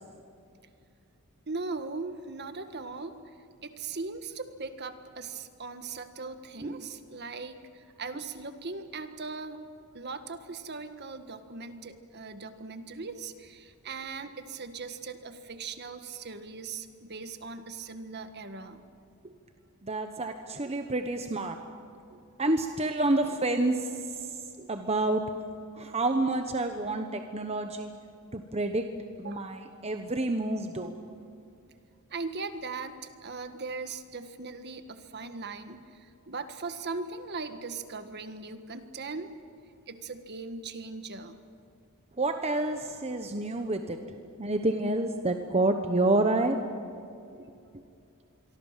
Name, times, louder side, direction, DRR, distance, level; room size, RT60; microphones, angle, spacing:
voice 1, 1.5-3.2 3.6-9.6 9.9-18.8 29.2-29.6 32.1-39.3 39.9-41.4, right 4 dB, 50° right, 9 dB, 1.6 m, -39 dB
voice 2, 19.8-21.6 22.1-23.9 24.2-25.2 25.7-27.9 28.3-28.9 29.2-30.9 42.2-46.6 47.3-47.5, right 2 dB, 30° right, 6 dB, 1.1 m, -29 dB
26.5 x 23.5 x 7.5 m, 2.5 s
head